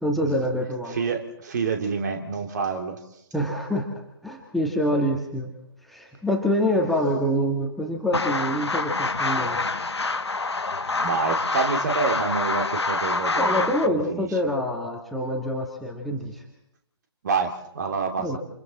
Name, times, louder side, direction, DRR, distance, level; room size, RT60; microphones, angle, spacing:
voice 1, 0.0-1.0 3.3-3.9 4.2-5.5 5.8-9.6 13.4-16.4 18.2-18.4, equal, ahead, -1 dB, 1.8 m, -26 dB
voice 2, 0.9-3.0 6.7-6.9 10.9-14.3 17.2-18.4, right 5 dB, 40° right, 4 dB, 2.8 m, -28 dB
sound 1, 8.1-13.9, left 3 dB, 70° left, 1.3 m, -26 dB
28.5 x 27.5 x 4.3 m, 0.82 s
figure-of-eight pair, 140°, 14 cm